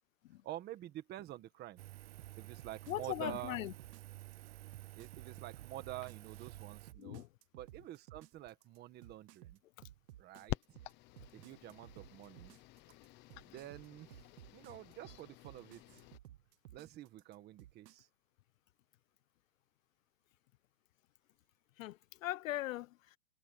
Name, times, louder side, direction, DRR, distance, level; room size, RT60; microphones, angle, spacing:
voice 1, 0.4-1.8 2.4-3.6 5.0-7.2 7.5-9.6 10.2-10.6 11.3-12.5 13.5-14.3 14.5-16.1 16.7-18.1, right 14 dB, 20° right, 1.5 m, -48 dB
Engine, 1.8-6.9, right 19 dB, 40° right, 0.8 m, -51 dB
sound 1, 2.2-18.0, right 13 dB, 75° right, 1.3 m, -56 dB
voice 2, 2.9-3.7 7.0-7.3 21.8-23.2, left 15 dB, 55° left, 0.7 m, -40 dB
sound 2, 10.5-16.2, left 19 dB, 20° left, 0.8 m, -48 dB
supercardioid pair, 165°, 48 cm